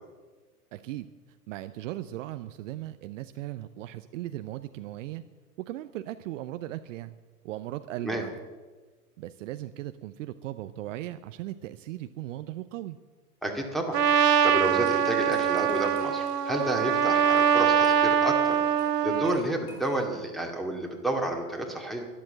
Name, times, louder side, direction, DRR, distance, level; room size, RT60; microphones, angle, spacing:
voice 1, 0.7-1.1 1.5-5.2 5.7-7.1 7.4-8.3 9.2-13.0, right 14 dB, 55° right, 11 dB, 0.7 m, -37 dB
voice 2, 13.4-14.0 14.4-18.6 19.0-22.1, right 1 dB, ahead, 2 dB, 2.3 m, -30 dB
Trumpet, 13.9-19.4, right 8 dB, 85° right, 1.0 m, -23 dB
sound 1, 14.6-20.2, left 2 dB, 75° left, 4.5 m, -52 dB
12.0 x 11.5 x 7.6 m, 1.3 s
hypercardioid pair, 110°, 47 cm